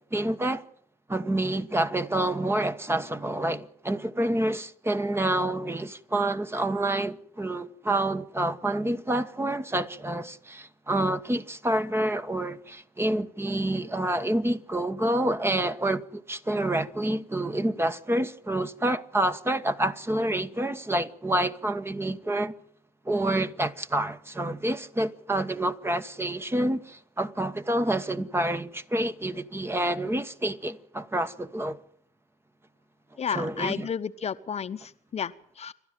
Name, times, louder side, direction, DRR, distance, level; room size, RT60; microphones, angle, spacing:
voice 1, 0.1-0.6 1.1-22.5 23.0-31.8 33.3-33.9, right 1 dB, 15° right, 1.2 m, -28 dB
voice 2, 33.2-35.7, left 7 dB, 40° left, 1.0 m, -32 dB
28.0 x 12.5 x 7.6 m
hypercardioid pair, 55°, 17 cm